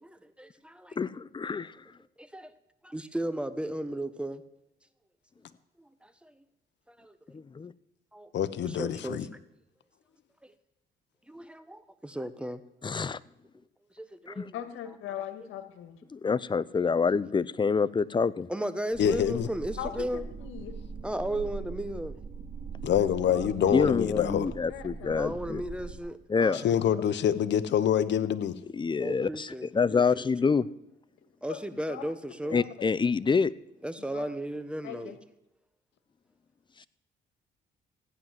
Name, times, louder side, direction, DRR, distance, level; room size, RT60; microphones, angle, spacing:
voice 1, 0.0-1.0 2.2-2.5 2.8-4.4 5.8-6.4 6.9-7.2 8.1-8.3 8.6-9.3 10.4-10.5 11.3-12.6 13.5-13.6 13.9-14.6 16.8-17.0 18.5-20.3 21.0-22.2 25.1-26.7 29.0-30.5 31.4-32.6 33.8-35.2, right 1 dB, 5° right, 11 dB, 1.2 m, -35 dB
voice 2, 1.0-1.8 7.3-7.7 12.8-13.2 14.4-14.5 16.1-18.5 23.7-25.6 26.3-26.8 28.7-30.7 32.5-33.5, left 5 dB, 25° left, 18 dB, 0.6 m, -27 dB
voice 3, 8.3-9.2 19.0-19.5 22.8-24.5 26.6-28.5, left 9 dB, 65° left, 12 dB, 1.0 m, -26 dB
voice 4, 14.5-16.0 19.8-20.8 23.0-23.5 24.7-25.2 31.5-31.6 31.9-32.0 32.4-32.9 34.1-34.3 34.8-35.2, left 10 dB, 90° left, 10 dB, 1.8 m, -40 dB
sound 1, 18.9-26.0, right 5 dB, 45° right, 2.5 m, -41 dB
15.5 x 9.6 x 7.5 m, 0.88 s
cardioid pair, 90°, 20 cm